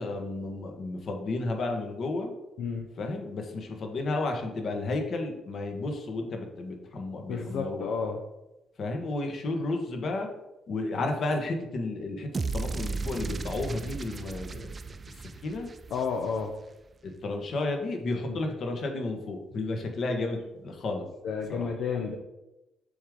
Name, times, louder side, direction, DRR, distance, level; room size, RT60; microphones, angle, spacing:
voice 1, 0.0-2.3 3.0-7.9 8.8-10.3 10.7-12.3 12.5-14.8 15.2-15.7 17.0-21.1 21.5-21.7, left 2 dB, 55° left, 3 dB, 1.3 m, -32 dB
voice 2, 7.2-8.2 15.9-16.5 18.3-18.4 21.2-22.2, left 5 dB, 75° left, 2 dB, 0.6 m, -31 dB
sound 1, 12.3-16.6, right 4 dB, 30° right, 0.4 m, -35 dB
7.0 x 3.6 x 5.0 m, 0.96 s
cardioid pair, 90°, 0 cm